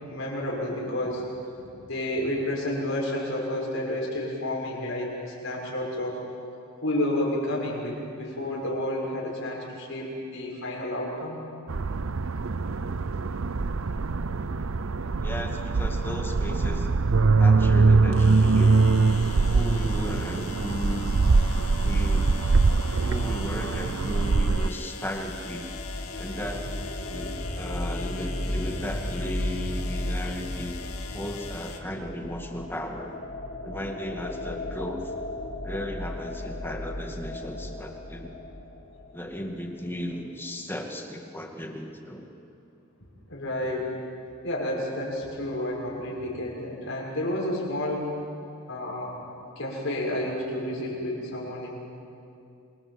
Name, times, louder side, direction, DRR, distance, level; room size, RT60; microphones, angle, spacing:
voice 1, 0.1-1.3 1.8-6.2 6.8-11.4 43.3-43.9 44.4-48.1 48.7-49.1 49.5-51.8, left 1 dB, 65° left, -2 dB, 6.8 m, -30 dB
sound 1, 11.7-24.7, right 3 dB, 70° right, 0.6 m, -23 dB
voice 2, 15.2-16.9 17.4-18.8 19.5-21.1 21.8-22.5 23.0-25.8 26.2-26.7 27.1-30.7 31.1-33.1 33.6-35.1 35.6-38.4 39.1-42.3, left 1 dB, 10° left, 2 dB, 2.2 m, -35 dB
sound 2, 16.1-16.2 18.1-31.8, left 6 dB, 85° left, 2.1 m, -42 dB
sound 3, 24.8-39.4, left 1 dB, 45° left, 2.3 m, -35 dB
28.0 x 24.0 x 7.6 m, 2.6 s
head